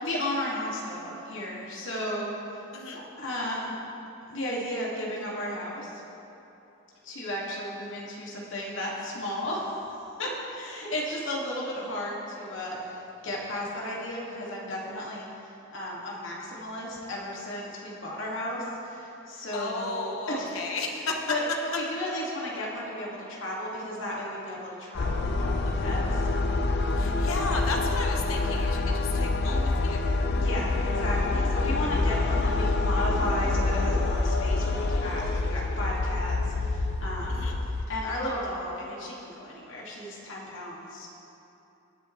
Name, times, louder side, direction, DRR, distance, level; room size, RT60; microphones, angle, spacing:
voice 1, 0.0-2.3 2.9-3.8 4.3-5.9 7.0-9.8 10.2-15.3 15.7-20.5 21.3-21.4 21.7-26.2 26.9-27.0 30.4-37.5 37.9-41.1, left 1 dB, 65° left, -4 dB, 2.4 m, -34 dB
voice 2, 19.5-21.3 26.9-30.1 37.3-37.6, left 3 dB, 80° left, 1 dB, 1.1 m, -34 dB
sound 1, 25.0-37.9, left 3 dB, 50° left, 0.5 m, -26 dB
19.5 x 7.5 x 3.3 m, 3.0 s
head